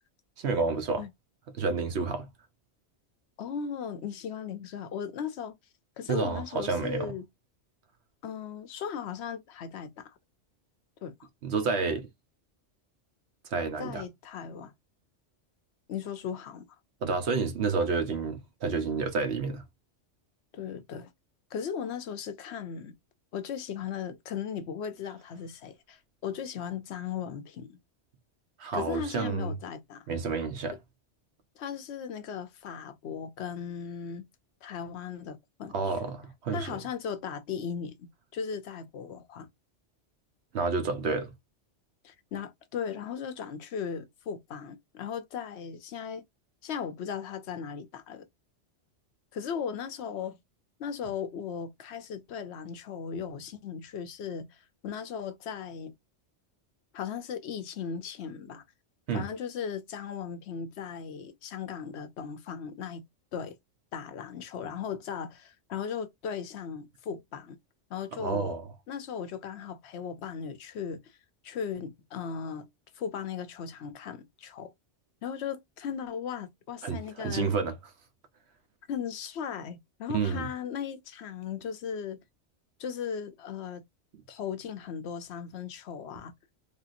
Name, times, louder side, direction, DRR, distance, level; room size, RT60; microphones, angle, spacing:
voice 1, 0.4-1.0 1.6-2.3 6.1-7.1 11.4-12.1 13.5-14.0 17.0-19.6 28.6-29.5 30.1-30.8 35.7-36.7 40.5-41.3 59.1-59.2 68.2-68.6 76.8-77.8 80.1-80.5, right 4 dB, 65° right, 1.0 m, -29 dB
voice 2, 3.4-5.5 6.0-7.3 8.2-10.2 11.0-11.3 13.8-14.7 15.9-16.6 20.5-21.1 21.5-23.0 23.3-27.8 28.7-30.0 31.6-34.3 34.6-36.1 36.5-39.5 42.0-46.2 46.6-48.2 49.3-50.4 50.8-55.9 56.9-58.6 59.1-63.0 63.3-63.6 63.9-67.6 67.9-68.6 68.9-71.2 71.4-72.7 72.9-74.7 75.2-77.5 78.9-82.2 82.8-83.8 84.3-86.3, left 7 dB, 70° left, 0.8 m, -37 dB
3.4 x 2.8 x 2.5 m
omnidirectional pair, 1.2 m